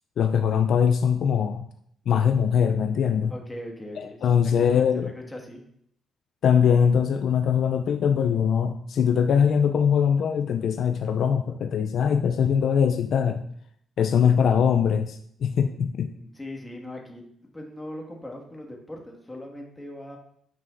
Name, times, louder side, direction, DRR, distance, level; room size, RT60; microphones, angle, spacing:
voice 1, 0.2-1.7 2.1-3.3 4.2-5.1 6.4-13.4 14.0-16.1, left 7 dB, 65° left, 7 dB, 0.4 m, -22 dB
voice 2, 3.3-4.3 4.6-5.6 15.5-15.8 16.1-17.2 17.5-20.2, left 1 dB, 10° left, 0 dB, 1.7 m, -40 dB
9.4 x 5.6 x 2.5 m, 0.68 s
cardioid pair, 90°, 0 cm